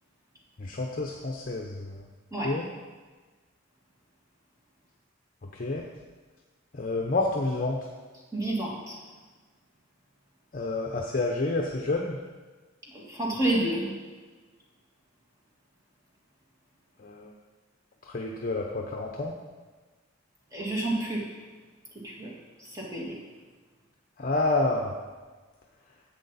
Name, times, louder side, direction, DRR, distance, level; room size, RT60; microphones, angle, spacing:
voice 1, 0.6-2.0 2.4-2.7 5.5-5.9 6.7-7.9 10.5-12.2 17.0-17.3 18.0-19.3 24.2-24.9, left 2 dB, 40° left, 0 dB, 0.7 m, -29 dB
voice 2, 8.3-9.0 12.9-13.9 20.5-21.2 22.0-22.3 22.6-23.1, right 1 dB, 15° right, -4 dB, 2.1 m, -29 dB
10.5 x 7.6 x 4.1 m, 1.4 s
head